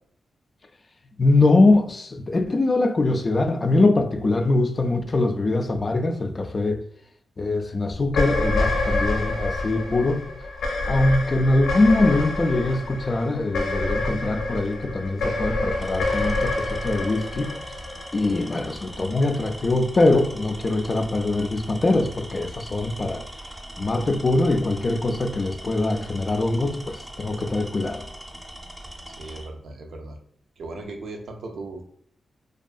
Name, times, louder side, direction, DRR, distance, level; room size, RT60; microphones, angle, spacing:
voice 1, 1.2-6.8 7.4-10.3 10.9-17.6 18.1-23.3 23.8-28.1, left 2 dB, 45° left, 0.3 m, -22 dB
sound 1, 8.1-18.5, left 2 dB, 85° left, 0.6 m, -27 dB
Tools, 14.6-14.8 15.7-29.5, equal, 20° right, 0.6 m, -40 dB
voice 2, 28.8-30.2 30.6-31.9, right 2 dB, 75° right, 0.4 m, -38 dB
2.6 x 2.3 x 2.4 m
cardioid pair, 55°, 0 cm